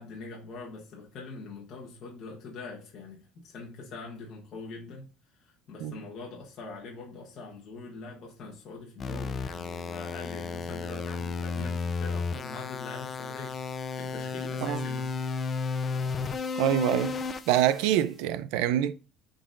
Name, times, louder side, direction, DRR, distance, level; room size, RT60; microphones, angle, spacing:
voice 1, 0.0-13.6 13.9-15.2, left 3 dB, 40° left, 1.1 m, -43 dB
sound 1, 9.0-18.0, left 4 dB, 20° left, 0.3 m, -33 dB
voice 2, 16.6-17.2 17.5-18.9, right 11 dB, 80° right, 0.4 m, -25 dB
10.0 x 3.9 x 2.5 m
cardioid pair, 180°, 0 cm